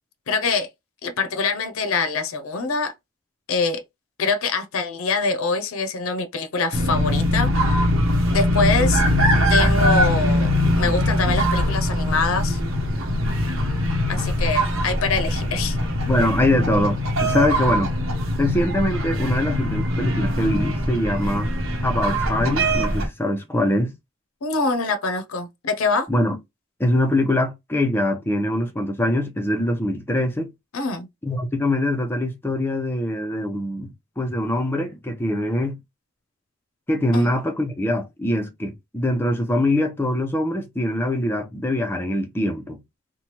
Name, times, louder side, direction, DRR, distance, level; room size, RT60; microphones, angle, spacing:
voice 1, 0.3-0.7 1.0-2.9 3.5-3.8 4.2-7.5 8.3-9.0 9.5-12.6 14.1-15.8 24.4-26.1 30.7-31.1 37.1-37.3, left 4 dB, 85° left, 0.6 m, -24 dB
sound 1, 6.7-23.1, equal, 75° right, 0.9 m, -22 dB
voice 2, 16.1-17.9 18.4-21.5 21.8-23.9 26.1-26.4 26.8-30.5 31.2-35.8 36.9-42.8, left 1 dB, 10° left, 0.5 m, -23 dB
3.2 x 2.2 x 2.8 m
head